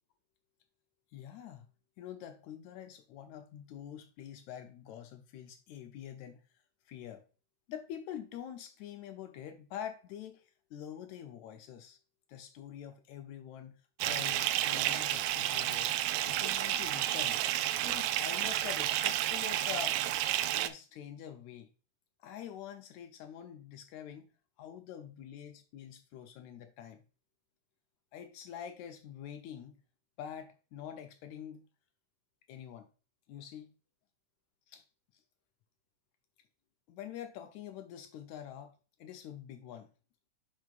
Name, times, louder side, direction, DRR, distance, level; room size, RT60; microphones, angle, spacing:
voice 1, 1.1-1.7 2.0-6.4 6.9-7.2 7.7-12.0 12.3-13.8 14.0-16.0 16.3-17.4 17.8-20.0 20.5-21.7 22.2-24.3 24.6-27.0 28.1-29.8 30.2-31.7 32.5-32.9 33.3-33.7 34.7-34.8 36.9-39.9, left 9 dB, 75° left, 1.8 m, -46 dB
Bathtub (filling or washing) / Fill (with liquid), 14.0-20.7, right 13 dB, 85° right, 1.5 m, -31 dB
10.5 x 4.7 x 2.5 m
omnidirectional pair, 3.6 m